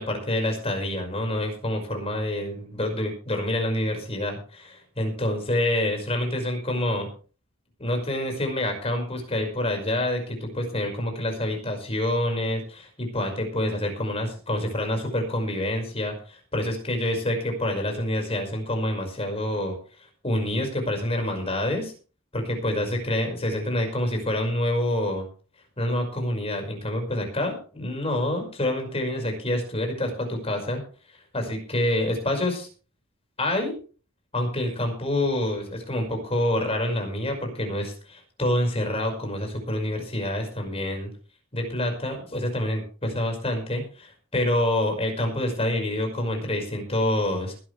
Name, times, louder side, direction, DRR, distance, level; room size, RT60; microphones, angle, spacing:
voice 1, 0.0-7.1 7.8-19.8 20.2-21.9 22.3-25.2 25.8-30.8 31.3-32.7 33.4-33.7 34.3-41.1 41.5-47.5, left 1 dB, 30° left, 3 dB, 5.6 m, -27 dB
21.0 x 11.5 x 3.4 m, 0.38 s
head